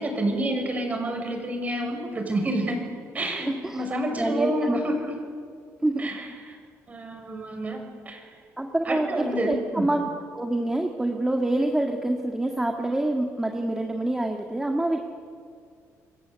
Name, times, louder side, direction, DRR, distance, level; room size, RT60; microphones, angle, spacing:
voice 1, 0.0-2.8 3.1-5.1 6.0-6.3 6.9-8.2 8.8-9.9, right 1 dB, 25° right, 3 dB, 6.5 m, -28 dB
voice 2, 3.4-3.9 4.2-4.8 5.8-6.1 8.6-15.0, right 1 dB, 10° right, 2 dB, 1.8 m, -26 dB
28.5 x 23.0 x 8.3 m, 2.2 s
cardioid pair, 135°, 6 cm